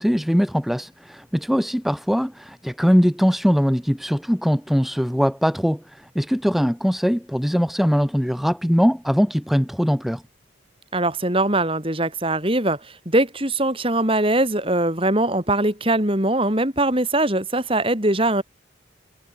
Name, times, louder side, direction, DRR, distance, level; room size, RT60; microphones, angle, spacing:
voice 1, 0.0-10.2, equal, ahead, 4.9 m, -21 dB
voice 2, 10.9-12.8 13.0-18.4, right 1 dB, 30° right, 5.0 m, -21 dB
head